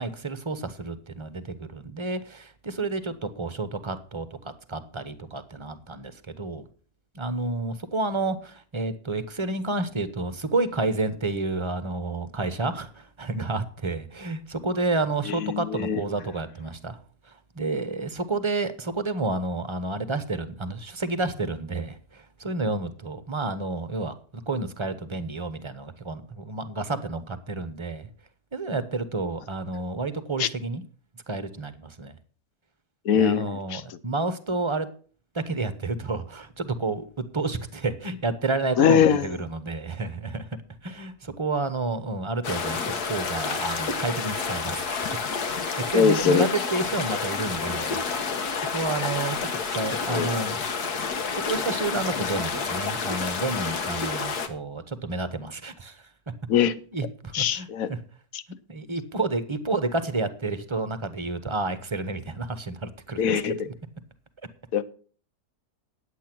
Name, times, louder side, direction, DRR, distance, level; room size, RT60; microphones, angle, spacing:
voice 1, 0.0-6.6 7.1-17.0 17.5-24.1 24.5-28.1 28.5-30.8 31.3-32.2 33.1-34.9 35.3-37.0 37.3-40.5 40.8-48.0 48.7-50.6 51.3-56.0 56.9-58.0 58.7-63.2, right 3 dB, 25° right, 0.7 m, -30 dB
voice 2, 15.3-16.0 30.4-30.5 33.0-34.0 38.8-39.3 45.9-46.5 48.9-49.1 50.1-50.3 56.5-56.8 57.3-57.9 58.3-58.4 63.2-63.7 64.7-64.8, left 8 dB, 65° left, 1.2 m, -22 dB
sound 1, 42.4-54.5, left 5 dB, 85° left, 1.8 m, -29 dB
10.5 x 8.4 x 6.0 m
omnidirectional pair, 1.6 m